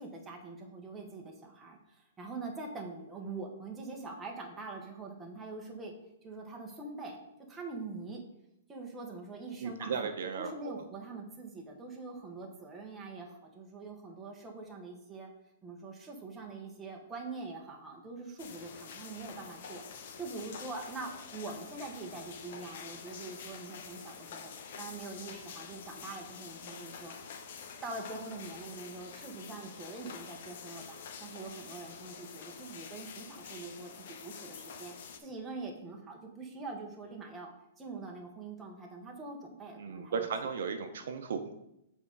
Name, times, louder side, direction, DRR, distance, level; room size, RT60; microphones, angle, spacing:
voice 1, 0.0-5.9 6.2-7.2 7.5-8.2 8.7-15.3 15.6-19.8 20.2-27.1 27.4-27.5 27.8-34.9 35.2-37.5 37.8-40.3, right 3 dB, 10° right, 0 dB, 0.9 m, -44 dB
voice 2, 9.6-10.8 39.8-41.6, right 6 dB, 65° right, 7 dB, 0.8 m, -36 dB
sound 1, 18.4-35.2, left 6 dB, 50° left, 0.8 m, -47 dB
7.1 x 3.6 x 5.2 m, 0.85 s
hypercardioid pair, 170°, 0 cm